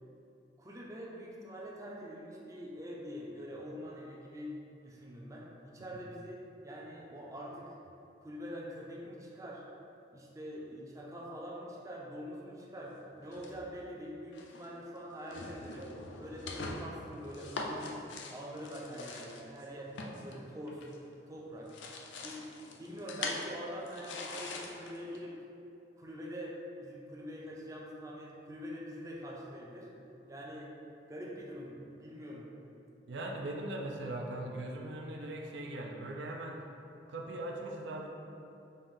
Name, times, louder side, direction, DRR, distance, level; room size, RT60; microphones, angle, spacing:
voice 1, 0.6-4.5 4.8-7.8 8.2-9.6 10.1-15.9 16.2-17.9 18.3-20.8 21.3-21.7 22.2-22.4 22.8-25.4 26.0-29.9 30.3-30.7 31.1-32.5, equal, 15° right, -3 dB, 0.5 m, -44 dB
sound 1, 13.3-13.9 14.3-14.7 15.2-21.2 21.5-25.2, left 3 dB, 75° left, 0.5 m, -43 dB
voice 2, 33.1-36.6 37.1-38.1, right 1 dB, 70° right, 1 dB, 0.4 m, -40 dB
5.3 x 2.6 x 3.7 m, 2.8 s
head